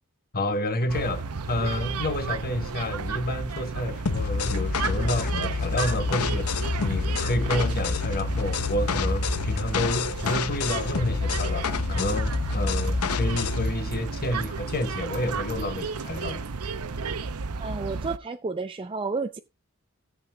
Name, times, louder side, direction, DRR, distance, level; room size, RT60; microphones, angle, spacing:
voice 1, 0.3-16.5, left 1 dB, 45° left, 1.2 m, -29 dB
sound 1, 0.9-18.2, right 4 dB, 90° right, 0.8 m, -33 dB
sound 2, 4.1-13.7, left 5 dB, 85° left, 0.7 m, -28 dB
voice 2, 17.6-19.4, right 4 dB, 25° right, 0.5 m, -31 dB
17.0 x 7.7 x 2.3 m
head